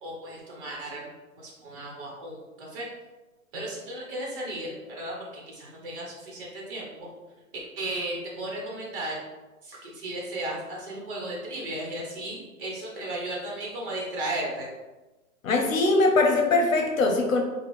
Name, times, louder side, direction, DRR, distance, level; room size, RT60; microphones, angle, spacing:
voice 1, 0.0-1.1 1.4-2.9 3.5-7.1 7.8-9.2 9.6-14.7, right 1 dB, 40° right, -3 dB, 1.2 m, -35 dB
voice 2, 15.4-17.4, left 2 dB, 70° left, 3 dB, 0.9 m, -21 dB
5.0 x 2.4 x 3.2 m, 1.1 s
hypercardioid pair, 165°, 42 cm